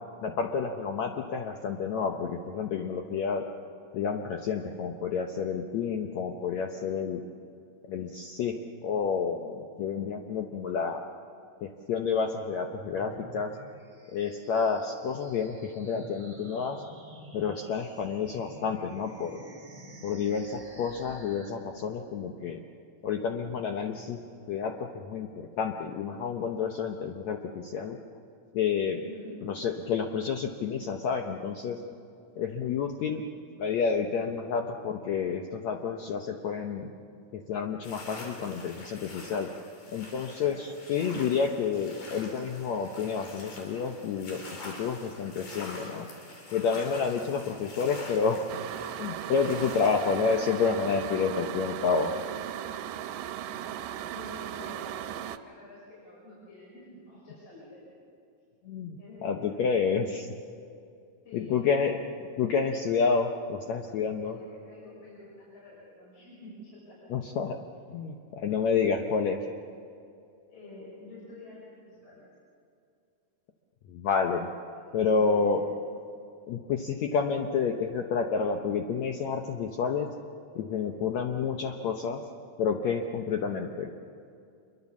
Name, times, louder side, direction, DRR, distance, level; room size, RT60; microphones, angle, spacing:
voice 1, 0.2-3.5 3.9-7.2 7.9-11.0 11.6-13.5 14.1-16.8 17.3-19.4 20.0-22.6 23.0-24.2 24.5-28.0 28.5-29.0 29.4-31.8 32.4-33.2 33.6-36.9 37.3-39.5 39.9-46.1 46.5-48.5 49.0-52.1 58.7-60.3 61.3-62.0 62.4-64.4 67.1-67.6 67.9-69.5 73.9-74.5 74.9-75.6 76.5-80.1 80.6-82.2 82.6-83.9, left 6 dB, 65° left, 3 dB, 1.9 m, -29 dB
sound 1, 12.7-21.5, right 2 dB, 15° right, 2.7 m, -50 dB
voice 2, 28.9-29.4 40.4-40.6 53.4-53.8 54.1-57.8 59.0-59.6 61.2-61.6 61.8-61.9 64.2-67.0 70.5-72.3 74.5-75.6 83.3-83.7, left 1 dB, 45° left, -6 dB, 7.0 m, -48 dB
sound 2, 37.8-50.5, left 2 dB, 85° left, 5.7 m, -45 dB
sound 3, 48.5-55.4, right 11 dB, 75° right, 2.3 m, -37 dB
27.0 x 23.0 x 7.2 m, 2.5 s
omnidirectional pair, 4.0 m